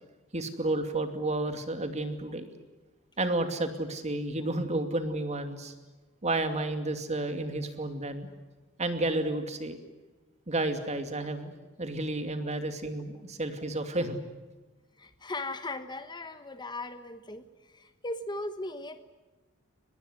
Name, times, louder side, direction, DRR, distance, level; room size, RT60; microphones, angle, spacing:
voice 1, 0.3-2.5 3.2-5.7 6.2-8.3 8.8-9.8 10.5-11.5 11.8-14.2, right 2 dB, 35° right, 7 dB, 2.6 m, -31 dB
voice 2, 15.0-19.0, left 2 dB, 20° left, 10 dB, 1.2 m, -38 dB
24.0 x 20.5 x 9.6 m, 1.2 s
head